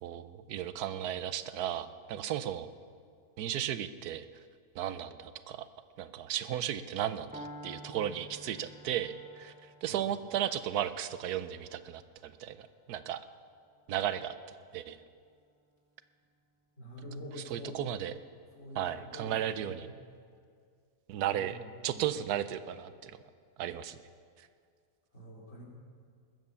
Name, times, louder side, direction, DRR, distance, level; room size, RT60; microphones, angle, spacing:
voice 1, 0.0-2.7 3.4-4.3 4.7-5.7 6.0-13.2 13.9-15.0 17.5-18.1 18.8-19.9 21.1-21.6 21.8-23.2 23.6-24.0, right 10 dB, 90° right, 13 dB, 1.2 m, -35 dB
Piano, 7.3-15.3, equal, 15° right, 0.3 m, -52 dB
voice 2, 16.8-17.9 18.5-19.9 21.3-22.0 25.1-25.7, left 1 dB, 40° left, -6 dB, 4.6 m, -46 dB
20.0 x 8.0 x 7.0 m, 2.2 s
omnidirectional pair, 1.6 m